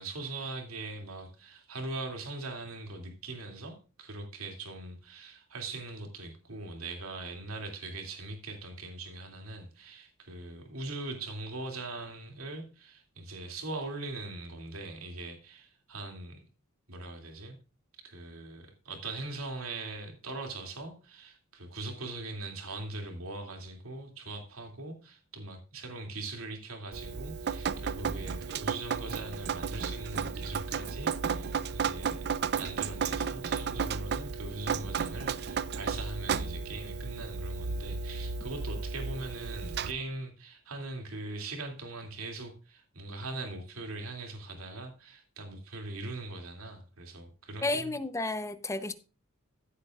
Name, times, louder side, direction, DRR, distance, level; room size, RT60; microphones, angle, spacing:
voice 1, 0.0-16.5 16.9-17.6 18.0-32.3 32.5-47.9, right 2 dB, 80° right, 2.7 m, -41 dB
Drip, 26.9-39.9, right 5 dB, 50° right, 0.5 m, -33 dB
voice 2, 47.6-48.9, left 2 dB, 15° left, 0.8 m, -32 dB
15.0 x 8.3 x 2.5 m
head